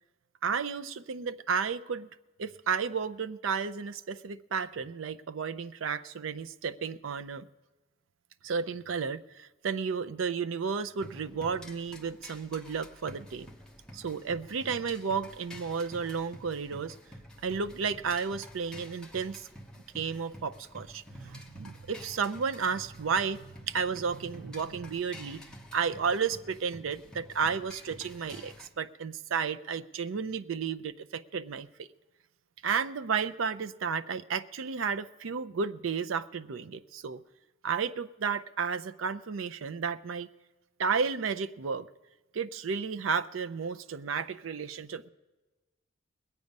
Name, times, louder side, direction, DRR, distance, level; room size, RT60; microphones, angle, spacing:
voice 1, 0.4-2.1 2.4-7.5 8.4-13.5 13.9-17.0 17.4-19.5 19.9-25.4 25.7-31.9 32.6-37.2 37.6-40.3 40.8-41.9 42.3-45.1, right 6 dB, 85° right, 13 dB, 0.5 m, -32 dB
sound 1, 11.0-28.7, equal, 5° left, 0.9 m, -49 dB
21.0 x 8.3 x 5.3 m, 1.2 s
head